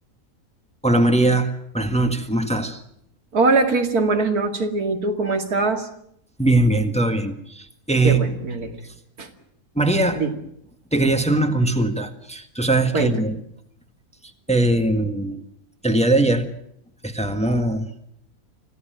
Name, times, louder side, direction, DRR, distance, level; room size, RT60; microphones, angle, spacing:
voice 1, 0.8-2.8 6.4-8.2 9.7-10.2 10.9-13.4 14.5-15.4 15.8-16.5 17.0-17.9, right 2 dB, 5° left, 1.6 m, -20 dB
voice 2, 3.3-5.9 8.0-8.8 9.2-9.3 10.1-10.3 12.9-13.1, right 3 dB, 85° right, 2.8 m, -22 dB
26.0 x 16.5 x 9.1 m
omnidirectional pair, 1.6 m